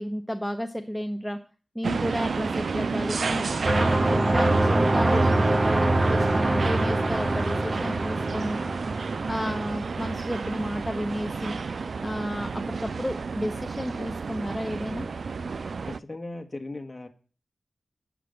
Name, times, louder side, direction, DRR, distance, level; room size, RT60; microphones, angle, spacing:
voice 1, 0.0-1.4 1.7-8.6 9.3-11.6 12.0-15.1, equal, ahead, 7 dB, 0.7 m, -32 dB
sound 1, 1.8-16.0, right 4 dB, 70° right, 0.3 m, -31 dB
sound 2, 3.7-10.4, right 1 dB, 25° right, 0.9 m, -24 dB
voice 2, 15.9-17.1, left 2 dB, 25° left, 4 dB, 1.4 m, -37 dB
8.1 x 6.0 x 6.4 m, 0.37 s
wide cardioid pair, 85°, 0 cm